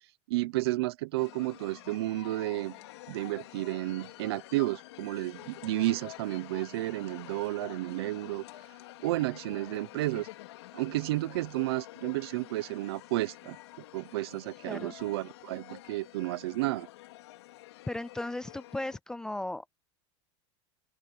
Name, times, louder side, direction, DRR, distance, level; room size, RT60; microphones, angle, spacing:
voice 1, 0.3-2.8 3.1-8.4 9.0-10.3 10.7-13.6 13.9-16.9, right 18 dB, 70° right, 1.0 m, -32 dB
sound 1, 1.2-19.0, left 17 dB, 85° left, 4.4 m, -48 dB
voice 2, 17.9-19.7, left 2 dB, 5° left, 0.3 m, -36 dB
open air
supercardioid pair, 175°, 14 cm